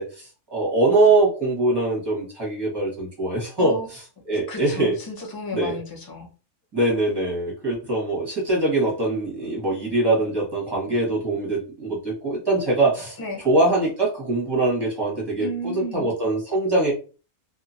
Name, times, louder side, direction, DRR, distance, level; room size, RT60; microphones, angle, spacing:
voice 1, 0.0-4.0 4.3-4.9 5.5-5.8 6.7-13.2 13.4-16.9, right 2 dB, 20° right, -4 dB, 1.2 m, -23 dB
voice 2, 4.5-6.3 13.2-13.4 15.4-16.1, equal, 25° left, 1 dB, 0.5 m, -33 dB
2.8 x 2.4 x 2.6 m, 0.35 s
omnidirectional pair, 1.3 m